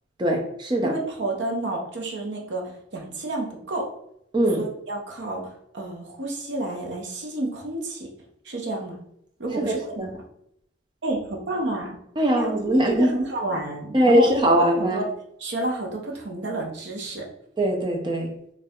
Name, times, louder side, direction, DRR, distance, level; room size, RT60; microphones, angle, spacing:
voice 1, 0.2-0.9 4.3-4.7 9.6-10.1 12.2-13.1 13.9-15.0 17.6-18.3, right 1 dB, 25° right, 1 dB, 0.5 m, -21 dB
voice 2, 0.8-3.9 4.5-8.1 8.4-9.0 9.4-9.8 11.0-12.0 12.4-14.3 14.6-15.0 15.4-17.3, right 2 dB, 60° right, 0 dB, 0.7 m, -30 dB
4.3 x 2.3 x 2.4 m, 0.74 s
head